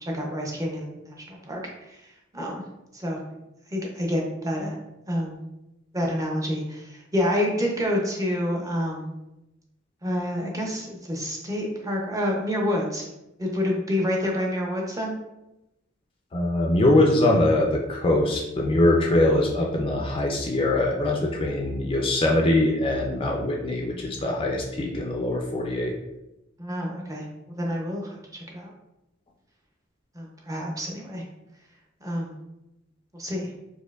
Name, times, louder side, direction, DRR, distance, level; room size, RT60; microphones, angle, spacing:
voice 1, 0.0-2.6 2.9-3.2 3.7-4.8 5.1-5.4 5.9-9.1 10.0-13.1 13.4-15.2 26.6-27.2 27.6-28.7 30.1-31.2 32.0-32.3 33.1-33.5, left 1 dB, 15° right, -1 dB, 0.6 m, -28 dB
voice 2, 16.3-25.9, left 1 dB, 25° left, 0 dB, 0.4 m, -22 dB
4.2 x 2.5 x 2.3 m, 0.93 s
head